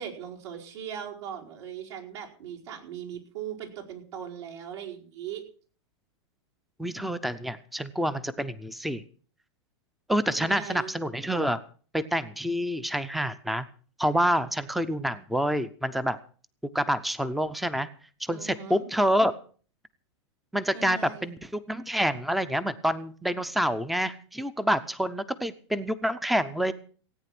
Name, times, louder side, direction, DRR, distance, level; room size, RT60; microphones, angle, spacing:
voice 1, 0.0-5.4 10.2-10.9 18.3-18.8 20.7-21.4, right 8 dB, 70° right, -1 dB, 4.9 m, -39 dB
voice 2, 6.8-9.0 10.1-11.6 11.9-13.7 14.0-16.2 16.7-17.9 18.2-19.3 20.5-26.7, equal, ahead, 15 dB, 0.6 m, -27 dB
17.5 x 9.2 x 6.0 m, 0.42 s
hypercardioid pair, 145°, 15 cm